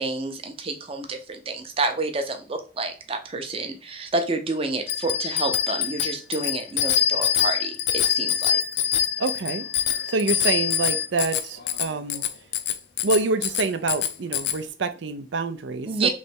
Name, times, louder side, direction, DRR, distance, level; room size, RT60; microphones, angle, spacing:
voice 1, 0.0-8.5 15.9-16.1, right 3 dB, 30° right, 0.7 m, -29 dB
Bicycle bell, 4.9-14.6, left 10 dB, 65° left, 0.5 m, -25 dB
voice 2, 9.2-9.7 10.1-12.3 13.0-16.1, right 3 dB, 80° right, 0.5 m, -26 dB
3.3 x 3.1 x 4.3 m
head